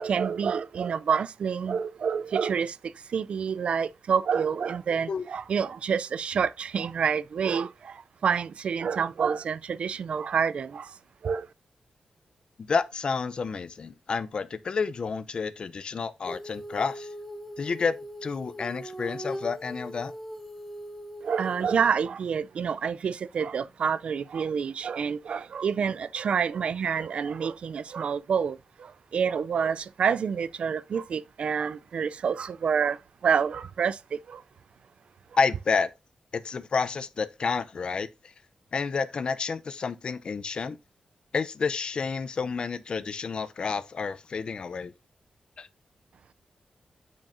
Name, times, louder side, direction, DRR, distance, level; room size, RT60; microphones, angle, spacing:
voice 1, 0.0-10.9 11.2-11.5 21.2-34.4, right 6 dB, 60° right, 0.3 m, -28 dB
voice 2, 12.6-17.1 17.6-17.9 18.2-20.1 35.4-35.9 36.3-38.1 38.7-40.8 41.3-44.9 45.6-45.7, left 5 dB, 45° left, 0.5 m, -30 dB
Female singing, 16.3-22.0, equal, 10° left, 0.8 m, -40 dB
8.6 x 6.2 x 2.5 m
wide cardioid pair, 175°, 2 cm